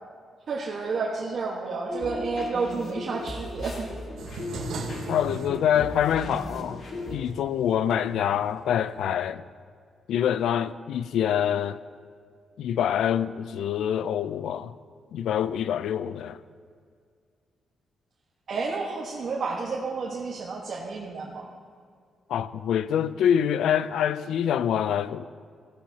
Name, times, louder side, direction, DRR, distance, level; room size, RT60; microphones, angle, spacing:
voice 1, 0.5-3.9 18.5-21.5, right 4 dB, 55° right, 1.4 m, -30 dB
sound 1, 1.9-7.1, left 2 dB, 60° left, 2.0 m, -37 dB
sound 2, 4.2-9.1, right 3 dB, 85° right, 1.3 m, -40 dB
voice 2, 5.1-9.5 10.1-11.8 12.6-14.8 15.1-16.4 22.3-25.2, left 9 dB, 85° left, 0.4 m, -25 dB
15.0 x 15.0 x 2.8 m
cardioid pair, 110°, 0 cm